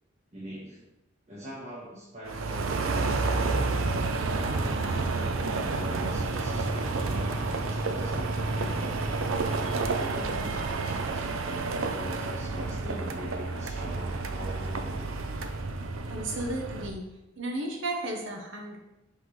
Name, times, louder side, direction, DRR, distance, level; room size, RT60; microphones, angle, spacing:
voice 1, 0.3-0.8 1.3-3.5 4.4-9.3 9.8-15.1, equal, 35° right, -8 dB, 1.5 m, -42 dB
sound 1, 2.3-16.9, right 3 dB, 85° right, 0.6 m, -30 dB
voice 2, 16.1-17.0 17.4-18.8, right 2 dB, 65° right, 1 dB, 1.1 m, -33 dB
5.8 x 5.7 x 3.2 m, 0.95 s
head